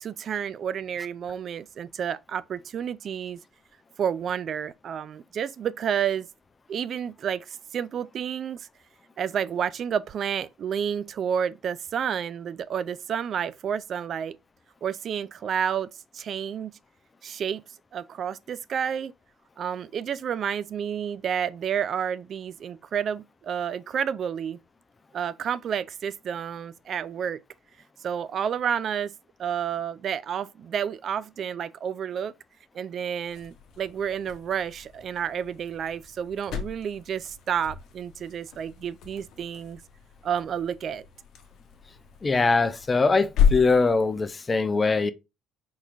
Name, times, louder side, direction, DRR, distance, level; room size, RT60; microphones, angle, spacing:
voice 1, 0.0-3.4 4.0-6.3 6.7-8.7 9.2-14.4 14.8-15.9 16.1-16.7 17.2-17.6 17.9-19.1 19.6-24.6 25.1-27.4 28.0-29.1 29.4-32.3 32.7-39.8 40.2-41.1, right 8 dB, 50° right, 0.3 m, -30 dB
sound 1, 33.2-44.4, left 8 dB, 60° left, 0.9 m, -33 dB
voice 2, 42.2-45.1, left 4 dB, 30° left, 0.6 m, -22 dB
4.3 x 3.9 x 2.5 m
hypercardioid pair, 55°, 0 cm